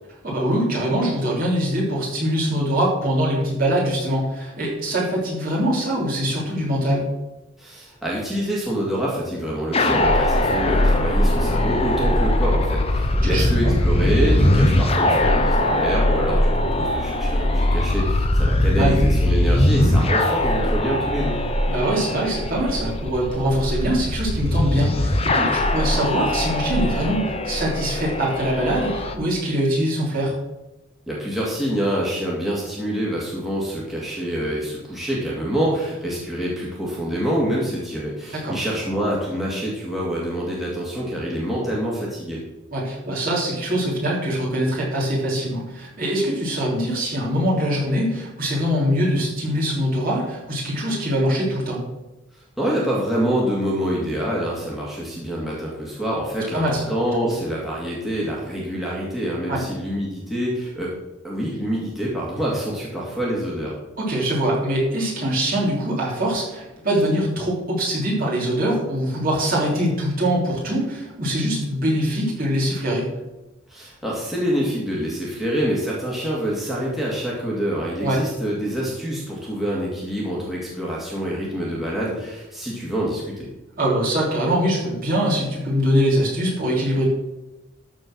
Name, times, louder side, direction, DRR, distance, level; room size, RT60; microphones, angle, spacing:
voice 1, 0.2-7.1 13.2-13.7 18.7-18.9 21.7-30.4 38.3-38.6 42.7-51.8 56.5-56.9 57.3-57.4 59.5-59.6 64.0-73.1 78.0-78.2 83.8-87.1, equal, 45° right, -5 dB, 3.5 m, -23 dB
voice 2, 7.6-21.4 31.1-42.4 52.3-60.9 61.2-63.7 73.7-83.5, equal, ahead, -6 dB, 2.1 m, -26 dB
sound 1, 9.7-29.1, left 1 dB, 30° left, 0.8 m, -20 dB
13.0 x 4.6 x 6.2 m, 1.0 s
head